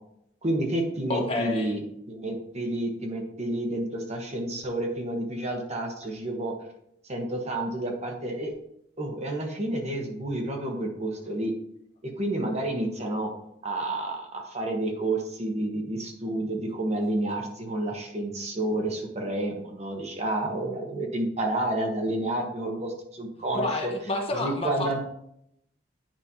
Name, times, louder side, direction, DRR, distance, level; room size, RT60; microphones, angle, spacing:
voice 1, 0.4-1.8 2.1-6.5 7.1-8.5 9.0-11.5 12.2-13.3 13.6-23.9 24.3-25.0, right 1 dB, 35° right, 2 dB, 1.2 m, -30 dB
voice 2, 1.1-1.7 23.5-25.0, left 2 dB, 30° left, 2 dB, 1.0 m, -29 dB
9.0 x 5.2 x 2.9 m, 0.75 s
head